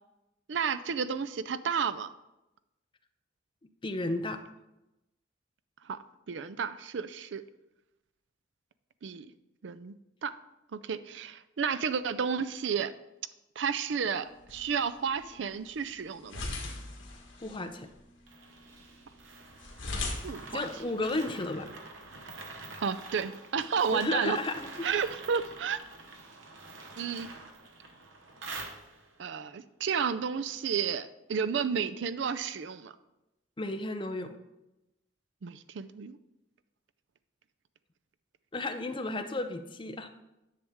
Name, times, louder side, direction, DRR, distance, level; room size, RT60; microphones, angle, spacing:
voice 1, 0.5-2.1 5.8-6.0 6.3-7.4 9.0-9.3 9.6-9.9 10.2-10.3 10.7-12.9 13.6-16.4 20.2-20.7 22.8-24.4 24.8-25.8 27.0-27.3 29.2-32.9 35.4-36.2, right 6 dB, 70° right, 13 dB, 0.4 m, -32 dB
voice 2, 3.8-4.4 17.4-17.9 20.5-21.7 23.9-25.0 33.6-34.4 38.5-40.1, left 2 dB, 25° left, 8 dB, 0.6 m, -33 dB
sound 1, 14.2-21.3, left 2 dB, 75° left, 1.5 m, -41 dB
sound 2, 18.3-29.2, right 3 dB, 90° right, 1.0 m, -47 dB
10.0 x 6.6 x 3.6 m, 0.95 s
head